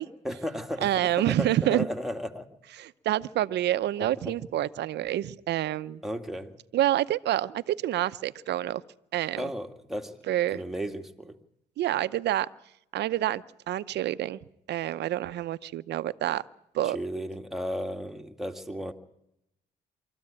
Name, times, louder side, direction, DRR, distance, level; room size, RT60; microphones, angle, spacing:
voice 1, 0.2-2.5 4.2-4.4 6.0-6.6 9.4-10.2 10.5-11.4 16.8-18.9, equal, ahead, 4 dB, 2.3 m, -34 dB
voice 2, 0.8-1.9 2.8-6.0 6.7-8.8 9.1-9.5 10.3-10.6 11.8-12.5 12.9-14.4 14.7-16.4 16.7-17.0, right 13 dB, 75° right, 14 dB, 0.8 m, -27 dB
24.5 x 14.0 x 8.8 m, 0.79 s
cardioid pair, 80°, 18 cm